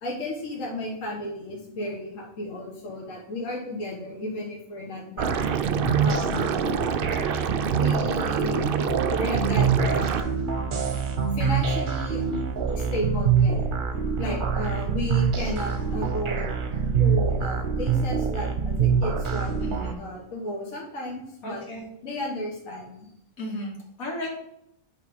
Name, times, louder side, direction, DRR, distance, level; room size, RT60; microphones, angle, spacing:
voice 1, 0.0-5.3 5.8-6.8 7.7-10.3 10.6-10.9 11.3-12.2 12.7-13.6 14.2-16.5 17.0-19.6 19.9-21.6 22.0-23.0, left 1 dB, 65° left, -2 dB, 1.7 m, -33 dB
sound 1, 5.2-19.9, right 6 dB, 45° right, 0.8 m, -25 dB
Liquid, 5.2-10.2, right 8 dB, 70° right, 0.5 m, -28 dB
voice 2, 19.6-20.0 21.4-21.9 23.4-24.3, left 1 dB, 85° left, -1 dB, 2.1 m, -35 dB
8.2 x 3.5 x 5.1 m, 0.78 s
omnidirectional pair, 1.4 m